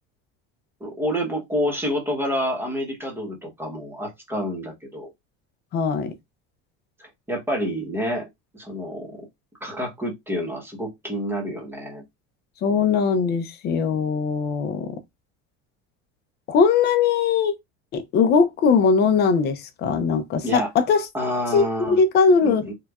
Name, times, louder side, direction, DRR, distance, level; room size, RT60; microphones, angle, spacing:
voice 1, 0.8-5.1 7.0-8.3 8.5-9.2 9.6-12.0 20.4-20.7 21.1-22.0 22.4-22.7, equal, 5° right, 0.9 m, -28 dB
voice 2, 5.7-6.1 12.6-15.0 16.5-17.5 17.9-21.1 21.5-22.7, left 5 dB, 35° left, 0.5 m, -20 dB
4.4 x 2.2 x 2.3 m
cardioid pair, 165°, 31 cm